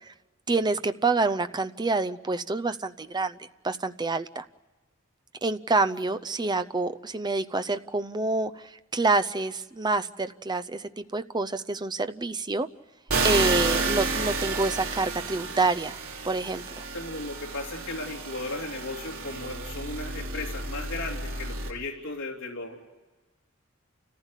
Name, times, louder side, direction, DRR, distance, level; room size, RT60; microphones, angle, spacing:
voice 1, 0.5-4.5 5.4-8.6 8.9-12.7 13.2-16.0 16.2-16.8, right 3 dB, 20° right, 12 dB, 0.6 m, -27 dB
sound 1, 13.1-21.7, right 3 dB, 75° right, 3.1 m, -31 dB
voice 2, 16.9-22.8, left 2 dB, 65° left, -3 dB, 3.1 m, -36 dB
29.5 x 15.0 x 8.2 m, 1.2 s
head